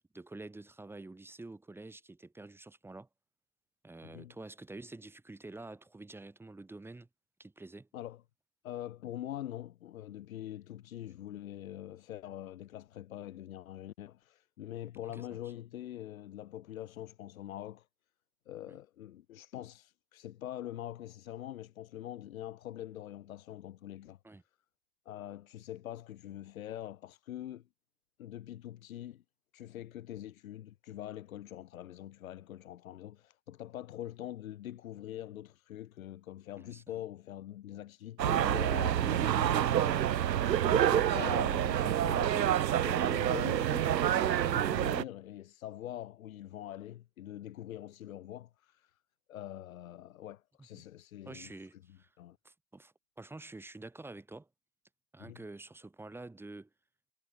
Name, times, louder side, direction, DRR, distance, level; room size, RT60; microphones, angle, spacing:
voice 1, 0.1-3.1 3.8-7.1 7.4-7.9 15.2-15.3 18.7-18.8 24.2-24.4 36.6-36.8 50.7-50.8 51.2-52.1 52.4-54.5 55.1-56.7, right 2 dB, 5° right, 4.5 m, -48 dB
voice 2, 4.0-4.4 7.9-8.2 8.6-17.9 18.5-24.2 25.1-27.7 28.2-29.2 29.5-49.0 49.3-52.4 55.2-55.4, left 12 dB, 55° left, 5.4 m, -44 dB
sound 1, 38.2-45.0, right 11 dB, 85° right, 0.8 m, -28 dB
hypercardioid pair, 135°, 49 cm